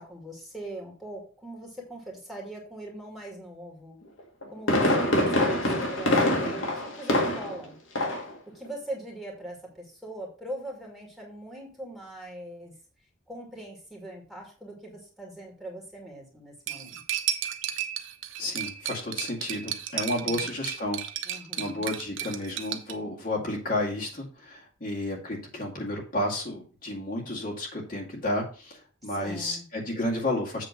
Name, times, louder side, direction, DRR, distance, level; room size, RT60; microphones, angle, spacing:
voice 1, 0.0-4.0 4.5-7.8 8.5-12.7 13.3-17.0 20.2-20.5 21.2-21.9 29.0-29.6, right 1 dB, ahead, -2 dB, 2.4 m, -41 dB
Fireworks, 4.2-7.6 8.0-8.3 8.7-8.8, left 1 dB, 75° left, 1.8 m, -25 dB
Cutlery silverware, 16.7-22.9, right 10 dB, 75° right, 0.9 m, -33 dB
voice 2, 18.4-30.7, left 1 dB, 45° left, -3 dB, 2.1 m, -32 dB
8.0 x 3.6 x 6.4 m, 0.38 s
head